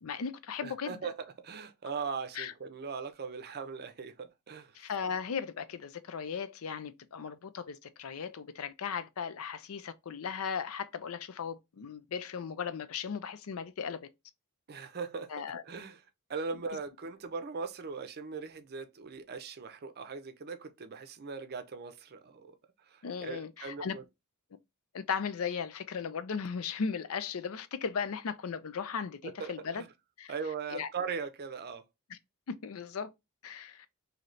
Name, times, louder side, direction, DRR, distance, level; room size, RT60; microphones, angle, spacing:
voice 1, 0.0-1.0 2.4-2.5 4.7-14.0 15.3-15.6 23.0-23.9 24.9-29.9 30.2-30.3 30.7-30.9 32.1-32.2 32.5-33.1 33.4-33.9, left 6 dB, 70° left, 0.5 m, -37 dB
voice 2, 0.6-4.7 14.7-15.3 15.6-16.0 16.3-22.6 22.9-24.0 29.2-29.9 30.3-31.8, right 5 dB, 45° right, 0.6 m, -39 dB
3.1 x 2.8 x 3.9 m
head